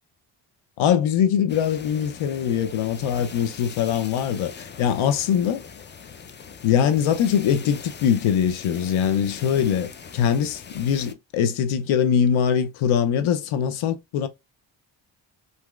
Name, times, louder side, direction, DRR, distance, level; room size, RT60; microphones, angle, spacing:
voice 1, 0.8-5.6 6.6-14.3, left 8 dB, 75° left, 0.7 m, -22 dB
sound 1, 1.5-11.1, left 6 dB, 25° left, 0.4 m, -42 dB
2.9 x 2.7 x 2.3 m
supercardioid pair, 55°, 50 cm